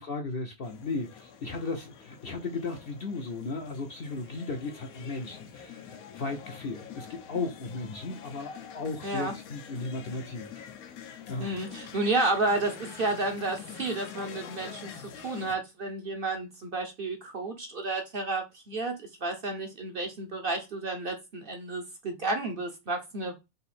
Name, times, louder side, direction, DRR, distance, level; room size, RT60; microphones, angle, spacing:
voice 1, 0.0-10.5 11.3-11.6, left 3 dB, 55° left, 0.7 m, -35 dB
sound 1, 0.6-15.6, left 8 dB, 90° left, 1.2 m, -46 dB
voice 2, 9.0-9.3 11.4-23.4, right 2 dB, 50° right, 0.8 m, -31 dB
3.9 x 2.6 x 4.1 m
omnidirectional pair, 1.5 m